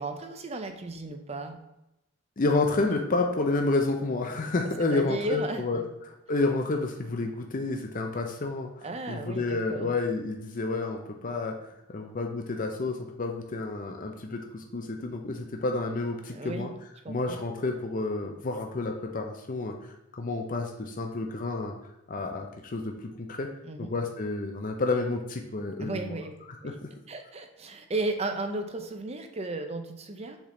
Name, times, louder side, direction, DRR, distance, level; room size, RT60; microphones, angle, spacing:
voice 1, 0.0-1.6 4.6-5.6 8.8-9.9 16.3-16.7 17.0-17.4 23.6-23.9 25.8-26.3 26.6-26.8 27.1-30.4, right 2 dB, 30° right, 6 dB, 0.6 m, -35 dB
voice 2, 2.4-5.8 6.1-11.5 11.9-16.7 17.1-21.7 22.1-22.9 23.3-23.5 23.8-26.1 26.6-26.9, left 3 dB, 40° left, 3 dB, 0.6 m, -30 dB
7.2 x 3.6 x 3.7 m, 0.88 s
head